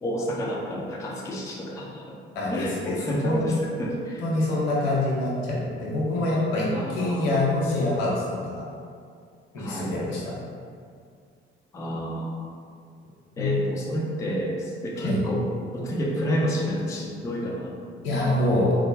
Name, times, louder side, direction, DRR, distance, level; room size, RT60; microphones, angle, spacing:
voice 1, 0.0-2.2 2.5-4.2 6.7-7.3 9.5-10.0 11.7-12.4 13.4-15.4 15.7-18.1, equal, 10° left, -3 dB, 0.4 m, -30 dB
voice 2, 2.3-3.5 4.2-8.6 9.5-10.4 13.4-13.6 15.0-15.2 18.0-18.8, left 2 dB, 70° left, -5 dB, 0.7 m, -25 dB
3.3 x 2.1 x 2.4 m, 2.2 s
figure-of-eight pair, 45°, 31 cm